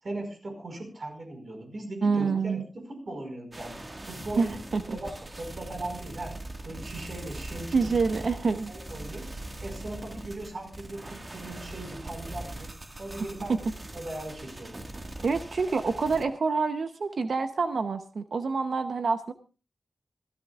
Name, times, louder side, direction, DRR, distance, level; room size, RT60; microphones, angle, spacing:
voice 1, 0.0-2.6 2.9-3.8 4.1-4.6 4.9-6.3 6.6-7.9 8.7-9.3 9.6-12.7 13.0-13.5 13.9-14.8, right 2 dB, 55° right, 4 dB, 5.1 m, -38 dB
voice 2, 2.0-2.6 4.4-4.5 4.7-5.0 7.7-8.7 15.2-19.3, right 4 dB, 75° right, 9 dB, 0.8 m, -27 dB
sound 1, 3.5-16.3, right 1 dB, 30° right, 1.8 m, -41 dB
26.5 x 12.5 x 2.4 m, 0.34 s
wide cardioid pair, 90°, 0 cm